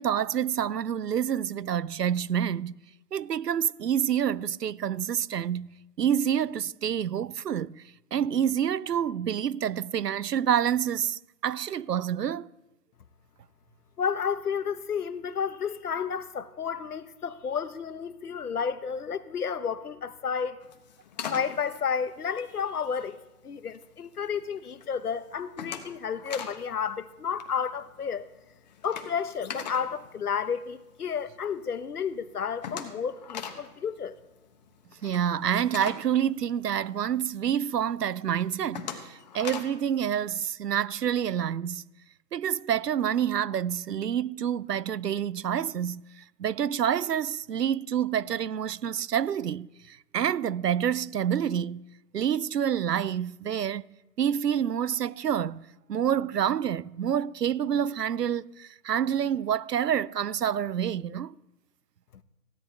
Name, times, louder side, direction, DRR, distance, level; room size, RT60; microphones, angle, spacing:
voice 1, 0.0-2.7 3.1-5.7 6.0-7.8 8.1-12.5 35.0-41.8 42.3-51.8 52.1-53.8 54.2-61.3, right 9 dB, 85° right, 0.7 m, -28 dB
voice 2, 14.0-20.6 21.3-23.2 23.4-28.3 28.8-34.2, left 7 dB, 70° left, 1.1 m, -31 dB
Music Box Door Open-Close.L, 20.6-23.2 23.6-24.1 24.5-24.9 25.2-26.6 26.9-27.0 27.3-31.1 31.5-31.6 31.8-31.9 32.1-37.2 37.6-37.7 38.2-39.9, left 7 dB, 25° left, 1.2 m, -41 dB
16.0 x 9.3 x 4.5 m
hypercardioid pair, 150°, 47 cm